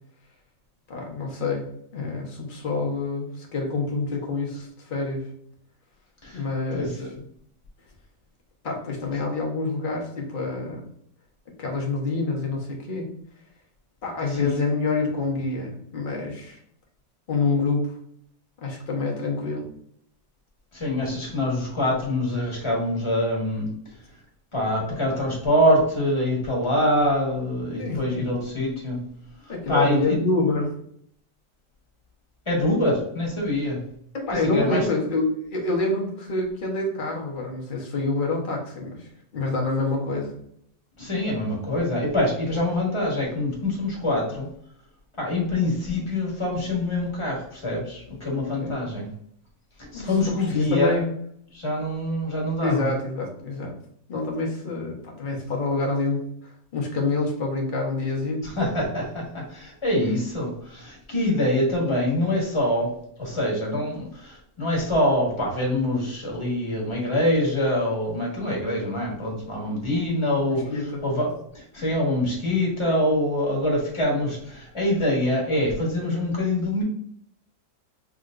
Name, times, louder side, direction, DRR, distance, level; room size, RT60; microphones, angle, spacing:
voice 1, 0.9-5.3 6.3-7.1 8.6-10.8 11.6-13.1 14.0-16.6 17.3-17.9 18.6-19.6 27.8-28.3 29.5-30.8 34.1-40.4 48.6-48.8 49.9-51.1 52.6-53.7 54.1-58.4 70.5-71.0, left 3 dB, 40° left, -1 dB, 0.8 m, -27 dB
voice 2, 6.7-7.1 14.3-14.6 20.7-23.7 24.5-29.0 29.4-30.2 32.5-33.8 34.5-34.8 41.0-44.5 45.2-49.1 49.9-51.0 51.5-52.9 58.4-62.9 63.2-76.8, left 1 dB, 20° left, -3 dB, 1.1 m, -25 dB
4.8 x 2.8 x 2.4 m, 0.66 s
omnidirectional pair, 1.9 m